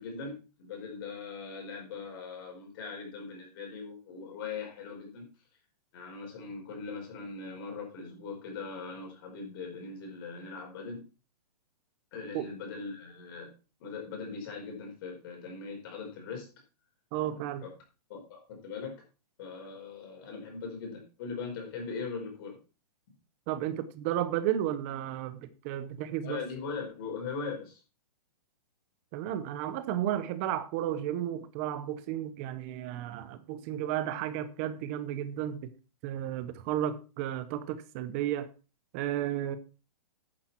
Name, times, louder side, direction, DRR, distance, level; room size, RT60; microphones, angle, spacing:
voice 1, 0.0-5.3 5.9-11.0 12.1-13.5 13.8-16.5 18.1-19.0 19.4-22.6 26.2-27.8, left 4 dB, 35° left, 5.3 m, -40 dB
voice 2, 17.1-17.7 23.5-26.4 29.1-35.7 36.0-38.5 38.9-39.6, right 11 dB, 20° right, 0.7 m, -33 dB
10.5 x 10.5 x 4.4 m
hypercardioid pair, 175°, 21 cm